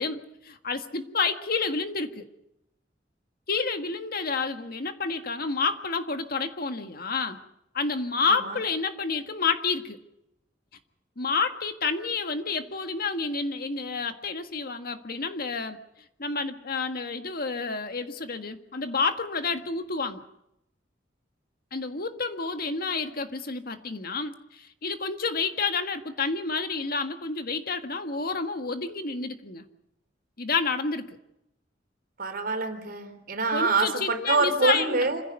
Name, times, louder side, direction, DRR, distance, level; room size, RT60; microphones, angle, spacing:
voice 1, 0.0-2.3 3.5-7.4 7.7-10.0 11.2-15.8 16.2-20.2 21.7-29.6 30.4-31.2 33.5-35.1, left 4 dB, 55° left, 7 dB, 1.7 m, -29 dB
voice 2, 32.2-35.2, right 3 dB, 55° right, 6 dB, 3.8 m, -25 dB
26.5 x 16.0 x 8.2 m, 0.81 s
head